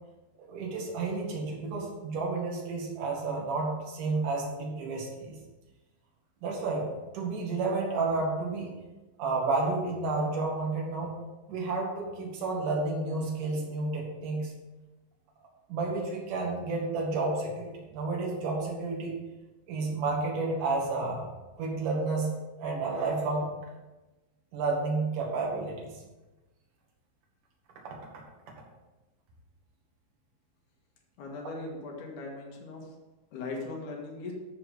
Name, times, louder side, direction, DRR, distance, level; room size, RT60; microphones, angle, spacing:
voice 1, 0.5-5.4 6.4-6.9 7.1-8.7 9.2-11.1 11.5-14.5 15.7-19.1 19.7-21.3 21.6-22.3 22.6-23.5 24.5-25.9, right 3 dB, 55° right, -2 dB, 3.0 m, -31 dB
voice 2, 31.2-32.8 33.3-34.3, left 3 dB, 55° left, 0 dB, 2.6 m, -39 dB
13.5 x 4.8 x 5.2 m, 1.1 s
omnidirectional pair, 5.4 m